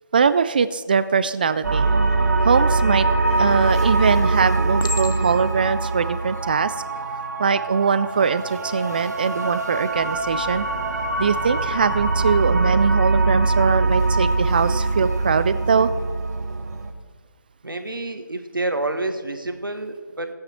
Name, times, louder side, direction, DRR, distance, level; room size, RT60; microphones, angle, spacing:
voice 1, 0.1-1.9 2.4-6.8 7.4-10.7 11.2-15.9, right 5 dB, 25° right, 14 dB, 0.4 m, -21 dB
sound 1, 1.6-16.9, right 3 dB, 55° right, 1.3 m, -23 dB
Chink clink, 3.3-3.8 4.8-5.6 6.3-6.6, left 4 dB, 70° left, 1.0 m, -33 dB
voice 2, 17.6-20.3, right 2 dB, 85° right, 7 dB, 1.5 m, -28 dB
15.5 x 8.9 x 4.3 m, 1.5 s
figure-of-eight pair, 155°, 11 cm